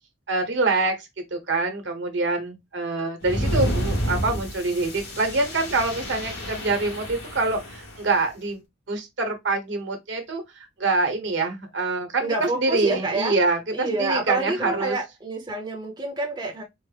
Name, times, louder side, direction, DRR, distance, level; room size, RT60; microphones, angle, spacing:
voice 1, 0.3-8.6 8.9-15.0, right 3 dB, 65° right, 1.1 m, -25 dB
sound 1, 3.2-8.1, equal, 75° left, 2.2 m, -29 dB
voice 2, 12.2-13.3 13.7-16.6, right 2 dB, 20° right, 0.7 m, -28 dB
4.4 x 2.1 x 3.3 m
head